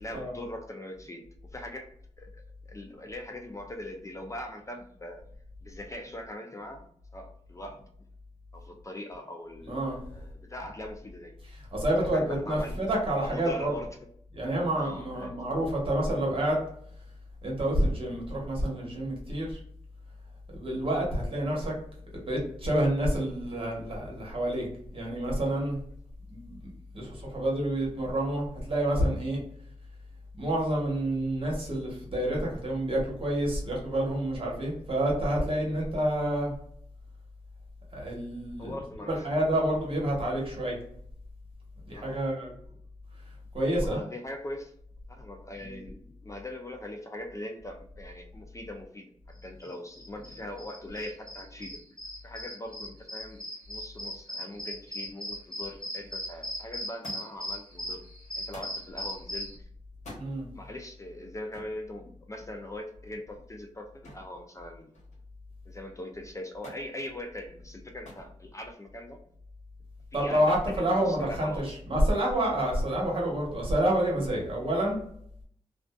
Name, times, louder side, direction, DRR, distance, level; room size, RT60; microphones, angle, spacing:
voice 1, 0.0-1.9 2.2-5.2 5.6-6.9 7.1-7.9 8.5-11.4 12.0-12.8 13.2-13.9 14.8-15.5 38.6-39.1 41.9-42.2 43.8-44.7 45.1-51.8 52.2-53.4 53.7-58.0 58.4-59.6 60.3-64.9 65.7-69.2 70.1-71.7, left 1 dB, 25° left, 3 dB, 0.3 m, -41 dB
voice 2, 9.6-10.0 11.7-13.7 14.3-16.6 17.4-19.6 20.5-21.7 22.1-24.7 24.9-25.8 26.3-29.4 30.4-36.5 37.9-38.7 39.1-40.8 41.8-42.5 43.5-44.0 45.6-45.8 60.2-60.5 70.1-75.0, right 1 dB, 45° right, -2 dB, 1.0 m, -28 dB
sound 1, 49.6-59.5, equal, 5° left, 1.0 m, -38 dB
Thump thud, 57.0-57.5 58.5-58.8 59.9-60.3 61.5-61.8 64.0-64.4 64.7-65.3 66.6-66.9 68.0-68.3 69.3-69.7 70.7-70.8, left 1 dB, 70° left, 1.1 m, -47 dB
2.5 x 2.4 x 2.2 m, 0.66 s
wide cardioid pair, 110°, 12 cm